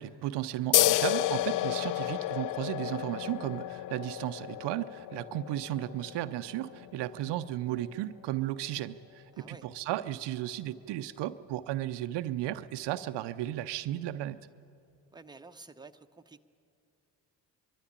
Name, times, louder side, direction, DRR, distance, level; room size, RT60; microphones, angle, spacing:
voice 1, 0.0-14.4, right 14 dB, 65° right, 13 dB, 0.7 m, -34 dB
sound 1, 0.7-7.9, left 14 dB, 45° left, 0.4 m, -31 dB
voice 2, 9.3-9.7 15.1-16.4, right 3 dB, 10° right, 7 dB, 1.0 m, -51 dB
23.0 x 13.0 x 8.7 m, 2.6 s
hypercardioid pair, 50°, 44 cm